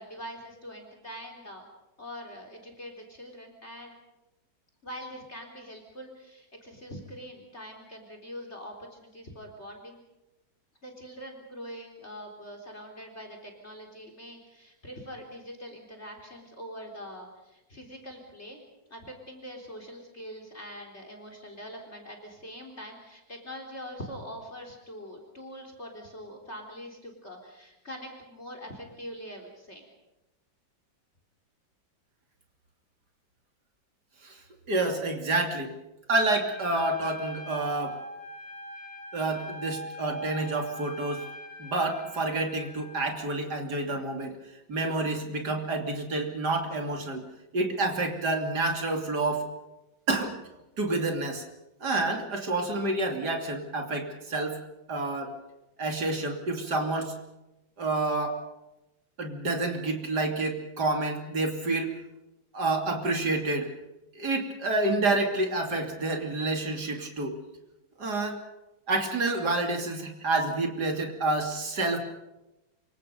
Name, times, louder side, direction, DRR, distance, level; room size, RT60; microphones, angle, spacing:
voice 1, 0.0-1.6 2.0-4.0 4.8-10.0 10.8-18.6 18.9-29.8, equal, 35° left, 3 dB, 4.1 m, -43 dB
voice 2, 34.7-35.7 36.1-38.0 39.1-41.3 41.6-44.4 44.7-47.2 47.5-49.4 50.1-50.3 50.8-51.4 51.8-54.6 54.9-55.3 55.8-57.1 57.8-58.4 59.2-61.9 62.5-63.7 64.2-67.4 68.0-68.4 68.9-72.0, right 2 dB, 55° right, 3 dB, 3.5 m, -28 dB
Trumpet, 36.4-43.1, left 1 dB, 75° right, 6.5 m, -42 dB
27.5 x 24.5 x 5.3 m, 0.97 s
omnidirectional pair, 2.1 m